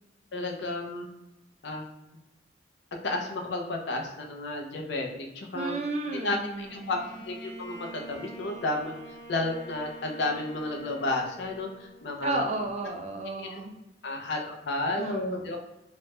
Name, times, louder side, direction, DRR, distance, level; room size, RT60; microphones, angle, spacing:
voice 1, 0.3-1.1 1.6-1.9 3.0-5.1 5.3-5.8 6.1-8.9 9.3-12.5 13.4-13.6 14.0-15.8, left 2 dB, 65° left, 2 dB, 0.5 m, -32 dB
voice 2, 5.5-7.2 12.2-13.7 15.0-15.4, right 2 dB, 40° right, 3 dB, 0.4 m, -33 dB
Bowed string instrument, 6.6-12.4, right 2 dB, 20° left, 1.0 m, -46 dB
3.2 x 2.1 x 2.9 m, 0.95 s
head